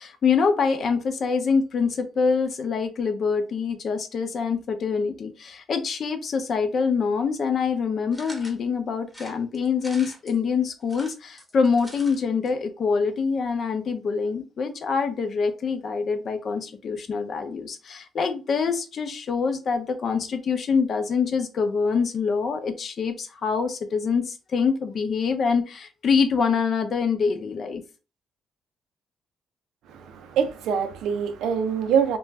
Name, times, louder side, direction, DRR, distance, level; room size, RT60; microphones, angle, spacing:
voice 1, 0.0-27.8, left 5 dB, 55° left, 0.6 m, -25 dB
sound 1, 8.1-8.6 9.1-10.4 10.8-12.2 12.5-12.6 12.8-12.9, equal, 5° left, 1.0 m, -44 dB
voice 2, 29.9-32.2, right 7 dB, 85° right, 0.4 m, -24 dB
2.5 x 2.2 x 3.2 m
cardioid pair, 90°, 0 cm